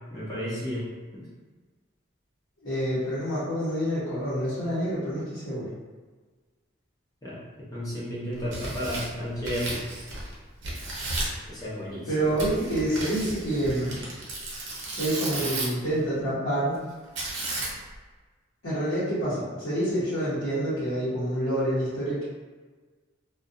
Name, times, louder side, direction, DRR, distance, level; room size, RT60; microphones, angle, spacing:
voice 1, 0.1-0.9 1.1-1.2 7.2-9.8 11.5-12.1, equal, 20° left, -8 dB, 0.6 m, -33 dB
voice 2, 2.6-5.7 12.1-14.0 15.0-17.0 18.6-22.2, right 1 dB, 80° left, -12 dB, 0.9 m, -27 dB
Tearing, 8.3-10.3 10.6-11.4 12.4-15.9 17.2-18.0, right 2 dB, 65° right, 0.6 m, -34 dB
2.4 x 2.3 x 2.5 m, 1.4 s
head